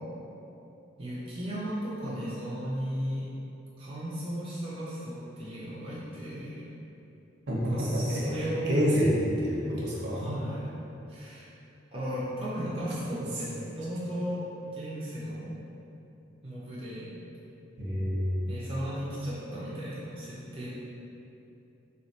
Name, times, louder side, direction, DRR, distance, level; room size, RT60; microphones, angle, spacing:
voice 1, 1.0-3.3 3.8-6.6 7.6-8.8 10.1-10.7 11.1-11.5 11.9-15.6 16.4-17.1 18.5-20.7, equal, 30° right, -9 dB, 0.5 m, -35 dB
voice 2, 7.5-10.2 17.8-18.6, equal, 60° right, -5 dB, 0.8 m, -28 dB
3.2 x 3.1 x 2.7 m, 2.9 s
head